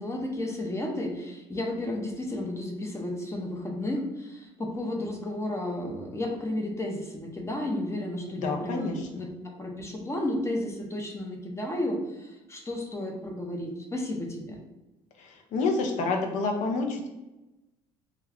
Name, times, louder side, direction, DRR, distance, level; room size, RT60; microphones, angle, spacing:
voice 1, 0.0-9.3 9.6-14.6, left 1 dB, 20° left, 0 dB, 0.6 m, -33 dB
voice 2, 8.3-9.2 15.2-17.1, left 3 dB, 65° left, 3 dB, 0.6 m, -29 dB
2.4 x 2.1 x 3.5 m, 1.0 s
supercardioid pair, 70°, 14 cm